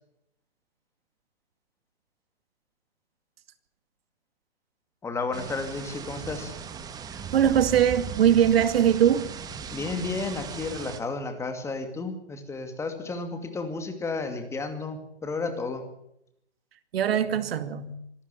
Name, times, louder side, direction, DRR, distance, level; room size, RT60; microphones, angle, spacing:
voice 1, 5.0-6.5 9.7-15.8, left 3 dB, 10° left, 7 dB, 2.4 m, -32 dB
sound 1, 5.3-11.0, right 6 dB, 10° right, 1.2 m, -38 dB
voice 2, 7.3-9.3 16.9-18.0, right 10 dB, 60° right, 11 dB, 2.4 m, -21 dB
25.0 x 12.0 x 8.4 m, 0.78 s
hypercardioid pair, 150°, 34 cm